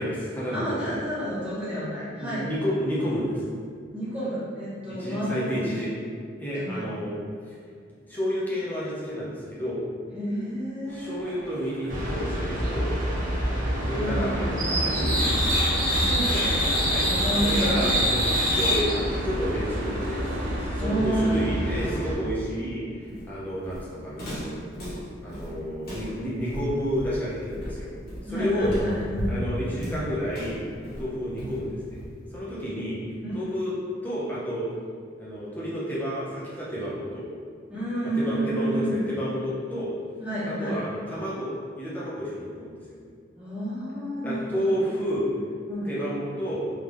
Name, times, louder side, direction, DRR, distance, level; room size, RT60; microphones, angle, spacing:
voice 1, 0.0-1.0 2.2-3.4 4.9-5.9 6.4-7.2 7.5-7.6 8.1-9.8 10.9-12.9 13.8-15.3 16.9-17.1 17.4-18.2 18.5-19.0 19.2-20.2 20.6-24.6 25.2-27.9 28.2-28.7 29.3-30.6 31.0-32.0 32.3-33.0 33.3-33.7 34.0-34.7 35.2-37.3 38.1-39.9 40.5-41.5 41.8-42.8 44.2-45.3 45.8-46.6, equal, 10° left, -9 dB, 1.0 m, -30 dB
voice 2, 0.5-2.4 3.9-5.8 6.5-6.9 10.1-11.2 14.0-14.9 15.9-16.5 17.0-18.1 20.8-21.5 28.3-29.4 33.2-33.4 37.7-39.0 40.2-40.8 43.4-44.7 45.7-45.9, right 1 dB, 5° right, -14 dB, 1.3 m, -30 dB
Boat Water vehicle, 10.9-20.7, right 1 dB, 80° right, 0.6 m, -37 dB
sound 1, 11.9-22.1, equal, 45° right, 1.0 m, -26 dB
Walk footsteps, 23.1-32.3, equal, 50° left, 1.4 m, -36 dB
3.6 x 3.5 x 3.2 m, 2.1 s
head